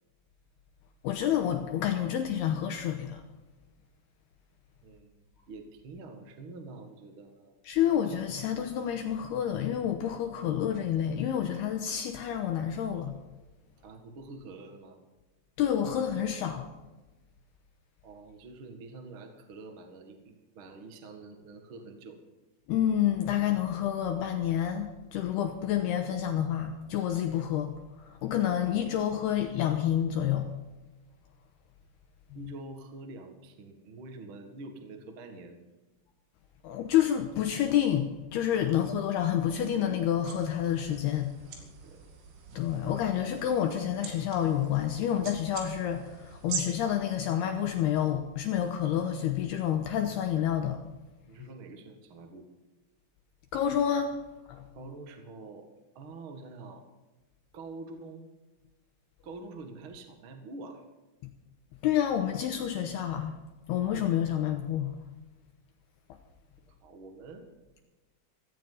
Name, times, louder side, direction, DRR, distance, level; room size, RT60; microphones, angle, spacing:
voice 1, 1.0-3.2 7.6-13.2 15.6-16.7 22.7-30.5 36.6-41.3 42.5-50.8 53.5-54.2 54.5-54.6 61.8-63.4 63.7-65.0, left 10 dB, 80° left, 5 dB, 2.5 m, -29 dB
voice 2, 4.8-7.6 13.8-15.0 18.0-22.2 32.3-35.6 38.7-38.8 41.4-42.0 51.3-52.5 54.7-55.7 55.9-56.8 57.5-58.3 59.2-60.8 66.7-67.5, right 3 dB, 60° right, 5 dB, 1.3 m, -46 dB
sound 1, 40.2-46.6, right 6 dB, 80° right, 4.8 m, -43 dB
16.5 x 15.0 x 4.0 m, 1.1 s
omnidirectional pair, 5.5 m